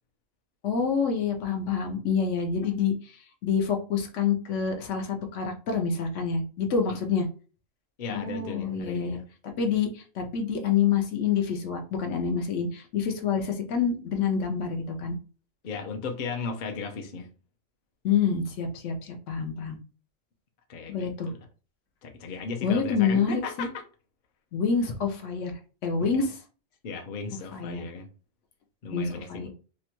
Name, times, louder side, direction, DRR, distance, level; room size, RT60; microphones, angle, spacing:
voice 1, 0.6-7.3 8.1-9.2 9.4-15.2 18.0-19.8 20.9-21.3 22.6-23.7 24.5-26.4 27.5-27.8 28.9-29.5, left 6 dB, 80° left, 0.9 m, -27 dB
voice 2, 8.0-9.2 15.6-17.3 20.7-21.4 22.0-23.7 26.0-26.1 26.8-28.1 28.8-29.5, left 4 dB, 55° left, 0.6 m, -36 dB
2.8 x 2.2 x 2.9 m
omnidirectional pair, 1.3 m